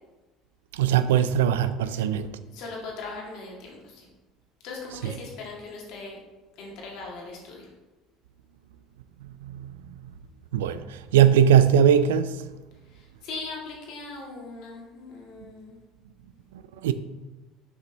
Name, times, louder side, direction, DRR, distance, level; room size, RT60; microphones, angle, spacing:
voice 1, 0.7-2.3 5.0-5.1 9.4-9.7 10.5-12.4 16.8-16.9, right 9 dB, 90° right, 0.3 m, -20 dB
voice 2, 2.5-4.1 4.6-6.2 6.6-7.7 12.9-15.8, left 3 dB, 70° left, 1.8 m, -39 dB
6.3 x 5.0 x 3.3 m
supercardioid pair, 85°, 0 cm